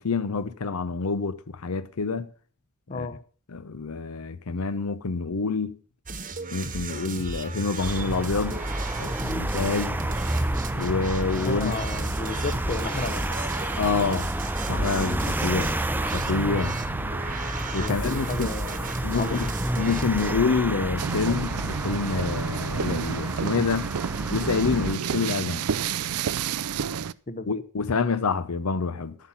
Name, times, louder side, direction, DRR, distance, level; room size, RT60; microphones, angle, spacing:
voice 1, 0.0-2.3 2.9-3.1 3.5-5.8 6.5-8.6 9.0-10.0 10.7-11.7 13.8-14.3 14.7-15.7 16.1-16.8 17.7-18.5 19.0-19.5 19.8-23.9 24.3-25.7 27.5-29.1, left 4 dB, 70° left, 0.7 m, -27 dB
voice 2, 2.9-3.2 11.3-13.5 17.8-19.5 27.3-27.6, left 3 dB, 35° left, 0.9 m, -33 dB
sound 1, 6.1-20.3, right 3 dB, 40° right, 1.2 m, -35 dB
sound 2, 7.8-24.9, right 1 dB, 10° right, 0.5 m, -30 dB
sound 3, 21.0-27.1, right 7 dB, 75° right, 0.5 m, -30 dB
14.0 x 5.7 x 7.2 m
head